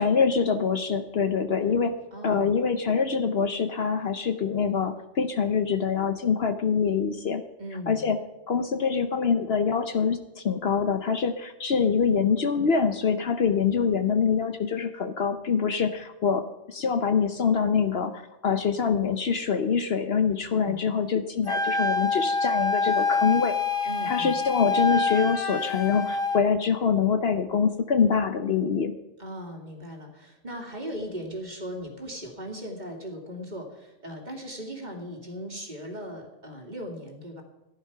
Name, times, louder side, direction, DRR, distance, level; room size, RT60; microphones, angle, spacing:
voice 1, 0.0-1.9 2.2-7.4 7.9-8.2 8.5-23.6 24.0-28.9, left 6 dB, 55° left, 8 dB, 1.0 m, -25 dB
voice 2, 2.1-2.6 7.6-8.1 20.5-20.8 23.9-24.4 29.2-37.4, equal, 35° right, 2 dB, 2.5 m, -38 dB
Wind instrument woodwind instrument, 21.5-26.4, left 4 dB, 25° left, 1.0 m, -26 dB
15.0 x 10.5 x 5.8 m, 0.95 s
omnidirectional pair, 1.3 m